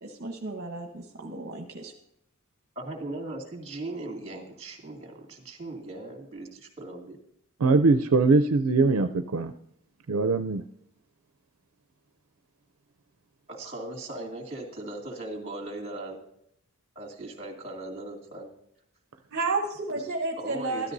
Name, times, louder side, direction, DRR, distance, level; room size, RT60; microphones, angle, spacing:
voice 1, 0.0-1.9 19.3-20.9, right 3 dB, 45° right, 2 dB, 1.1 m, -32 dB
voice 2, 2.8-7.2 13.5-16.2 17.0-18.5 20.4-20.9, right 2 dB, 30° right, 1 dB, 2.4 m, -38 dB
voice 3, 7.6-9.5 10.1-10.6, right 3 dB, 70° right, 7 dB, 0.5 m, -22 dB
13.5 x 13.0 x 2.7 m, 0.73 s
head